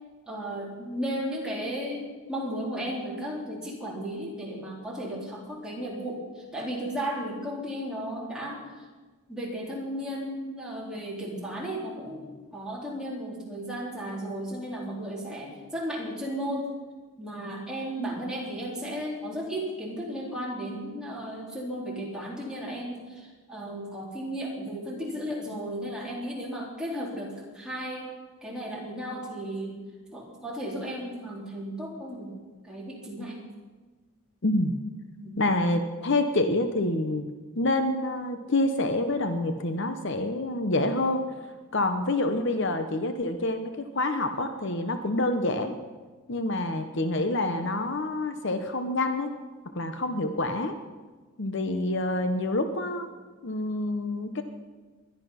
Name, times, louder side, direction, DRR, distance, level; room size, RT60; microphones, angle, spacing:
voice 1, 0.2-8.6 9.3-16.7 17.2-28.1 28.4-29.7 30.1-32.3 32.6-33.4 35.2-35.4, equal, 5° right, -4 dB, 3.8 m, -34 dB
voice 2, 34.4-34.8 35.4-37.2 37.6-41.2 41.7-45.8 46.3-49.3 49.7-50.7 51.4-53.1 53.4-54.4, left 2 dB, 55° left, 8 dB, 0.9 m, -27 dB
20.5 x 12.5 x 5.8 m, 1.3 s
head